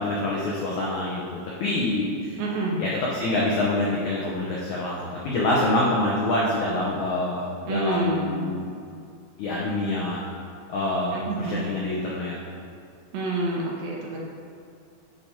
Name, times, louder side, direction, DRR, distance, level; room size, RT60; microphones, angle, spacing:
voice 1, 0.0-2.3 2.8-5.0 5.2-8.7 9.4-10.2 10.7-11.2 11.5-12.4, left 2 dB, 80° left, -5 dB, 1.7 m, -26 dB
voice 2, 2.4-2.8 7.7-8.4 11.1-11.6 13.1-14.2, right 2 dB, 70° right, -3 dB, 2.4 m, -27 dB
10.5 x 5.0 x 4.3 m, 2.4 s
omnidirectional pair, 4.7 m